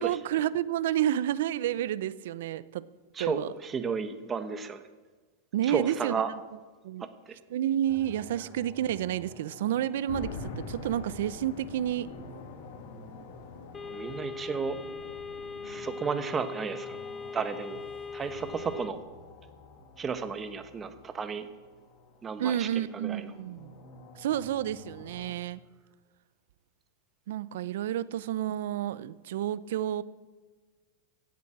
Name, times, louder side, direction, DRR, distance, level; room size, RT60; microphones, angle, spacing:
voice 1, 0.0-2.9 3.2-3.5 5.5-6.4 6.8-7.1 7.5-12.1 22.4-23.7 24.2-25.6 27.3-30.0, right 11 dB, 75° right, 18 dB, 0.6 m, -30 dB
voice 2, 3.1-4.8 5.6-6.3 7.0-7.4 13.9-14.8 15.6-17.0 17.3-17.8 18.1-19.0 20.0-21.5 22.2-22.7 22.9-23.3, right 6 dB, 20° right, 10 dB, 1.2 m, -33 dB
sound 1, 7.8-25.3, left 3 dB, 45° left, 2.7 m, -51 dB
sound 2, 10.1-18.8, left 3 dB, 65° left, 2.4 m, -45 dB
sound 3, 13.7-18.9, left 5 dB, 15° left, 0.7 m, -40 dB
15.5 x 8.3 x 7.4 m, 1.4 s
supercardioid pair, 135°, 0 cm